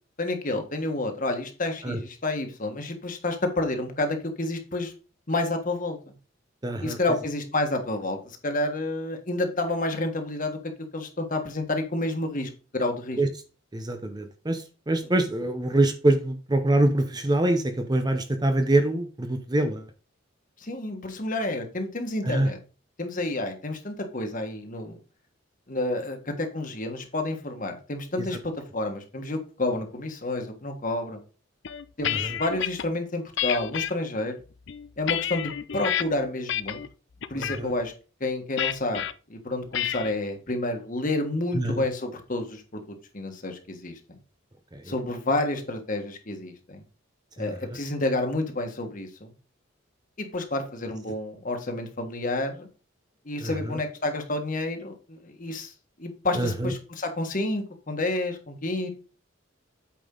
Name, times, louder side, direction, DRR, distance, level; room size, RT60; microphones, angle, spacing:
voice 1, 0.2-4.9 5.3-6.1 6.8-10.6 10.9-13.2 20.6-22.6 23.0-25.0 25.7-31.2 32.0-34.4 35.0-36.8 37.3-37.9 38.2-39.0 39.3-44.2 44.8-46.8 47.4-49.3 50.2-52.7 53.2-55.7 56.0-58.9, left 2 dB, 40° left, 5 dB, 1.5 m, -29 dB
voice 2, 6.6-7.0 13.2-13.3 13.7-19.9 22.2-22.5 28.2-28.3 32.0-32.4 37.3-37.7 41.5-41.8 44.7-44.9 47.4-47.8 53.4-53.8 56.3-56.7, right 1 dB, 20° right, 7 dB, 0.6 m, -25 dB
sound 1, 31.6-32.9 33.4-33.9 34.5-36.0 36.5-36.9 37.2-37.6 38.6-39.1 39.7-40.1, left 10 dB, 60° left, 0.5 m, -29 dB
8.6 x 5.4 x 3.8 m, 0.36 s
head